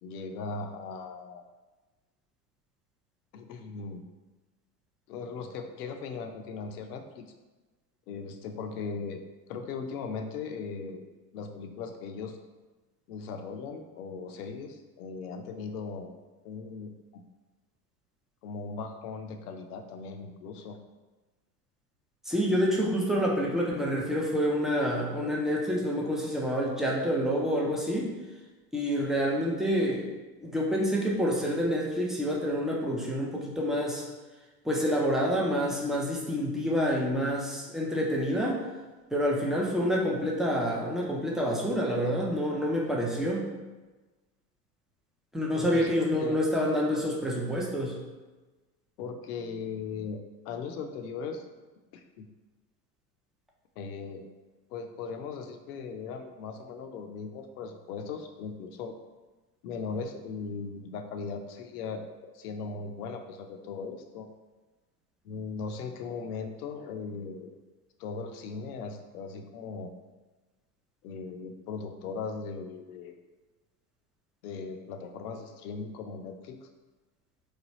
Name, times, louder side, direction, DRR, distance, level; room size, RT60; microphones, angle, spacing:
voice 1, 0.0-1.4 3.3-4.0 5.1-7.2 8.1-9.2 9.5-11.1 11.3-12.4 13.1-16.1 16.4-17.2 18.4-20.8 45.6-46.4 49.0-50.2 50.4-51.4 51.9-52.3 53.8-54.3 54.7-58.9 59.6-62.1 62.3-64.3 65.2-67.6 68.0-69.9 71.0-73.2 74.4-76.7, left 5 dB, 65° left, 5 dB, 0.6 m, -38 dB
voice 2, 22.3-28.1 28.7-30.1 30.4-34.0 34.6-38.6 39.1-43.5 45.3-47.9, equal, ahead, -3 dB, 0.3 m, -28 dB
3.2 x 2.2 x 4.0 m, 1.2 s
hypercardioid pair, 75°, 49 cm